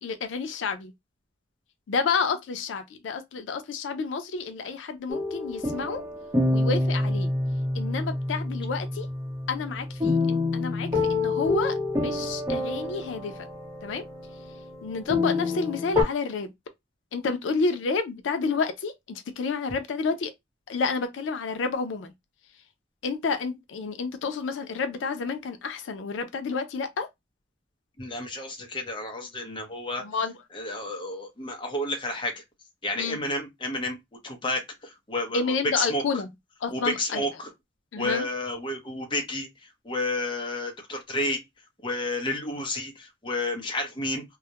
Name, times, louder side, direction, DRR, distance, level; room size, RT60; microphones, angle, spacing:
voice 1, 0.0-0.9 1.9-6.0 6.5-7.3 7.7-9.1 9.5-13.5 13.8-14.0 14.8-16.5 17.1-20.3 20.7-22.1 23.0-27.1 30.0-30.4 33.0-33.2 35.3-36.3 36.6-37.3 37.9-38.3, left 4 dB, 90° left, 0.4 m, -30 dB
sound 1, 5.1-16.0, left 2 dB, 20° right, 0.7 m, -27 dB
voice 2, 28.0-30.0 30.5-32.4 32.8-34.0 34.2-36.0 36.7-37.5 38.0-39.5 39.8-41.4 41.8-44.2, left 1 dB, 25° left, 0.6 m, -31 dB
2.3 x 2.0 x 2.7 m
head